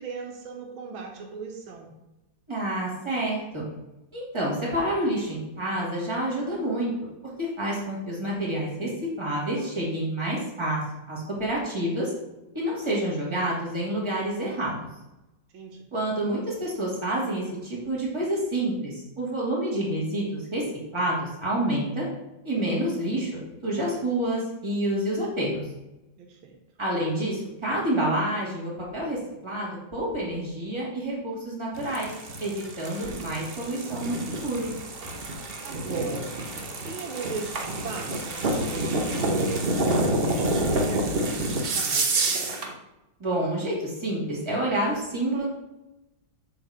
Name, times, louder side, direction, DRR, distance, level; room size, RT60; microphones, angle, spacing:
voice 1, 0.0-1.9 15.5-15.8 26.2-26.6 35.6-36.5 36.8-42.3, right 5 dB, 80° right, 2 dB, 1.8 m, -37 dB
voice 2, 2.5-3.7 4.1-6.9 7.4-8.9 9.2-10.8 11.1-12.1 12.5-14.8 15.9-20.6 20.9-22.1 22.4-23.3 23.6-25.6 26.8-32.1 32.4-34.7 43.2-45.5, right 1 dB, 15° right, -5 dB, 2.7 m, -28 dB
sound 1, 31.7-42.7, right 2 dB, 40° right, 0.8 m, -28 dB
8.1 x 4.1 x 6.5 m, 0.96 s
omnidirectional pair, 2.2 m